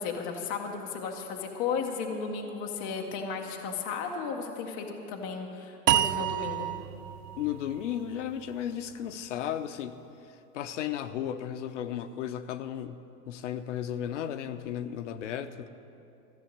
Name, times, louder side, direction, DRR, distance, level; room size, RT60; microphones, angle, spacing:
voice 1, 0.0-6.7, left 5 dB, 15° left, 2 dB, 0.5 m, -34 dB
sound 1, 5.9-9.1, right 12 dB, 90° right, 0.6 m, -30 dB
voice 2, 7.4-10.0 10.5-13.0 13.3-15.7, left 10 dB, 50° left, 10 dB, 0.7 m, -34 dB
14.0 x 6.9 x 9.9 m, 2.7 s
hypercardioid pair, 150°, 47 cm